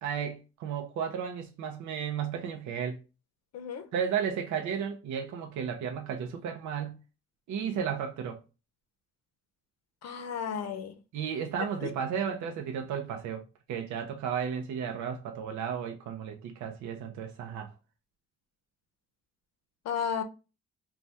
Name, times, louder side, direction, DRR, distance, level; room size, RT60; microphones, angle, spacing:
voice 1, 0.0-3.0 3.9-6.9 7.5-8.4 11.1-13.4 13.7-17.7, right 7 dB, 70° right, 0.6 m, -33 dB
voice 2, 3.5-3.9 10.0-11.0 11.8-11.9 19.8-20.2, left 7 dB, 60° left, 0.6 m, -33 dB
2.7 x 2.3 x 3.3 m
cardioid pair, 90°, 30 cm